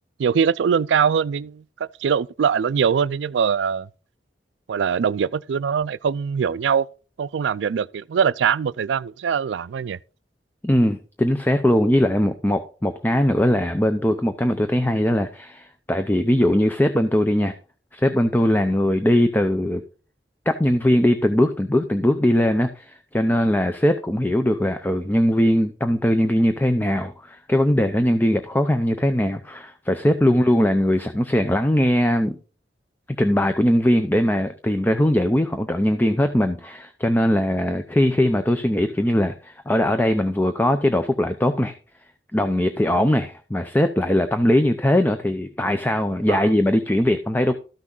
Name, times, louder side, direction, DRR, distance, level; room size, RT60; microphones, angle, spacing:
voice 1, 0.2-3.9 4.7-6.9 7.2-10.0 46.3-46.5, right 7 dB, 80° right, 0.4 m, -22 dB
voice 2, 10.6-17.5 17.9-19.8 20.5-32.4 33.1-41.8 42.3-47.5, left 1 dB, 10° left, 0.5 m, -20 dB
13.0 x 6.1 x 3.8 m
head